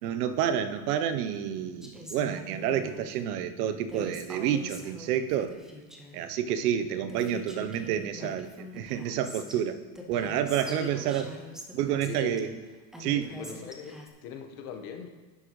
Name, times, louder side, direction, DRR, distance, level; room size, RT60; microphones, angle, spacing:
voice 1, 0.0-5.6 6.1-9.8 10.1-11.3 11.7-12.5 13.0-13.3, right 9 dB, 80° right, 11 dB, 0.8 m, -29 dB
Female speech woman speaking, 1.8-3.0 3.9-6.2 6.8-6.9 7.1-9.6 9.9-12.4 12.9-14.1, left 1 dB, ahead, 0.3 m, -44 dB
voice 2, 10.6-11.0 12.0-12.6 13.1-15.1, left 7 dB, 65° left, 5 dB, 1.3 m, -40 dB
10.5 x 7.9 x 3.1 m, 1.3 s
supercardioid pair, 140°, 45 cm